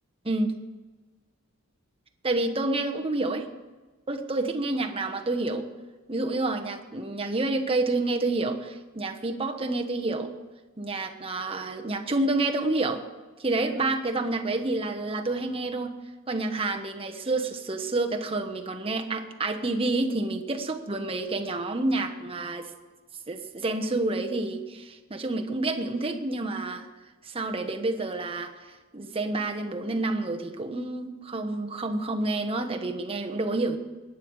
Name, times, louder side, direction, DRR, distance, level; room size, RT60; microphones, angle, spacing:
voice 1, 2.2-3.5 4.1-5.7 6.1-10.3 10.8-13.0 13.4-16.0 16.3-22.7 23.3-26.9 27.2-28.5 28.9-33.8, right 2 dB, 25° right, 4 dB, 1.1 m, -28 dB
22.0 x 9.8 x 4.8 m, 1.2 s
head